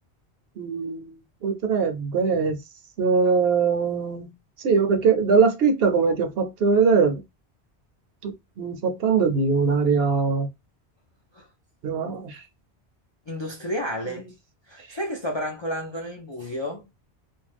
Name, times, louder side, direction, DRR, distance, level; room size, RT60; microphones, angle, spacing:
voice 1, 0.6-2.6 3.0-4.3 4.6-7.2 8.2-10.5 11.8-12.4, right 5 dB, 65° right, 0.8 m, -22 dB
voice 2, 13.3-14.3 14.7-16.8, equal, 45° left, 0.4 m, -31 dB
2.5 x 2.1 x 3.2 m
omnidirectional pair, 1.1 m